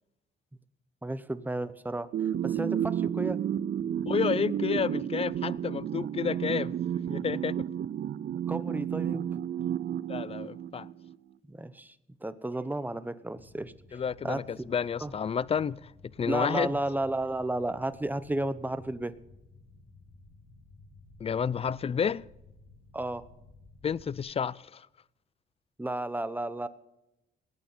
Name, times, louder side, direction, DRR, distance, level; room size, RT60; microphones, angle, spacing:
voice 1, 1.0-2.1 2.4-3.4 8.5-9.3 11.5-11.9 12.2-14.6 15.0-15.1 16.3-19.1 22.9-23.3 25.8-26.7, right 2 dB, 10° right, 0.9 m, -33 dB
sound 1, 2.1-11.1, right 10 dB, 55° right, 0.6 m, -31 dB
voice 2, 4.0-6.7 7.1-7.6 10.1-10.9 13.9-15.9 16.2-16.8 21.2-22.2 23.8-24.9, left 7 dB, 30° left, 0.4 m, -30 dB
sound 2, 13.3-24.2, left 2 dB, 90° left, 4.8 m, -55 dB
19.5 x 9.0 x 5.6 m
cardioid pair, 90°, 20 cm